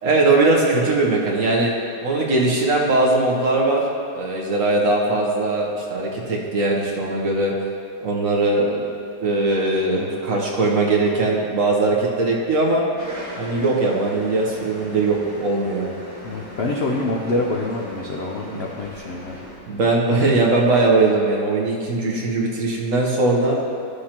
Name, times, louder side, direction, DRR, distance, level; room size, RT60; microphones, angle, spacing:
voice 1, 0.0-1.7 2.0-3.8 4.1-7.5 8.0-8.9 9.2-12.8 13.4-15.9 18.4-18.7 19.7-23.5, right 2 dB, 55° right, -2 dB, 1.2 m, -20 dB
sound 1, 13.0-19.6, left 1 dB, 15° right, 2.0 m, -39 dB
voice 2, 16.2-19.4 20.1-20.3 22.1-22.2, left 2 dB, 70° left, -1 dB, 0.6 m, -26 dB
13.0 x 6.4 x 2.9 m, 2.5 s
omnidirectional pair, 1.9 m